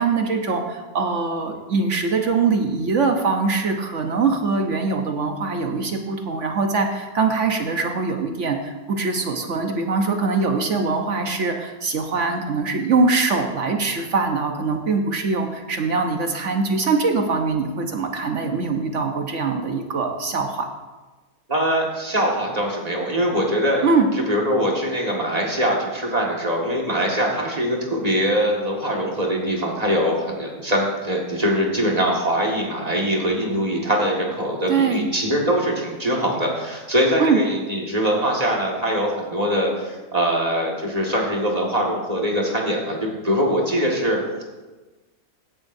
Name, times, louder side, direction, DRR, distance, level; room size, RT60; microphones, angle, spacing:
voice 1, 0.0-20.7 23.8-24.1 34.7-35.1 37.2-37.4, right 4 dB, 55° right, 4 dB, 1.1 m, -22 dB
voice 2, 21.5-23.8 24.3-44.4, equal, 25° right, -2 dB, 1.8 m, -22 dB
16.0 x 10.5 x 2.7 m, 1.2 s
omnidirectional pair, 1.6 m